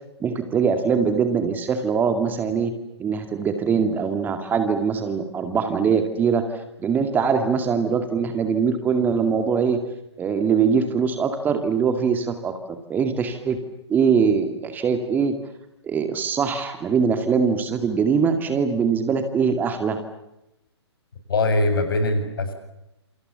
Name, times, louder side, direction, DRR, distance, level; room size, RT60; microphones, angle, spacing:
voice 1, 0.2-2.7 3.0-9.8 10.2-13.6 13.9-15.4 15.8-20.0, right 6 dB, 10° right, 7 dB, 2.3 m, -22 dB
voice 2, 21.3-22.5, left 2 dB, 55° left, 8 dB, 7.7 m, -21 dB
28.5 x 27.0 x 7.0 m, 0.87 s
figure-of-eight pair, 125°, 14 cm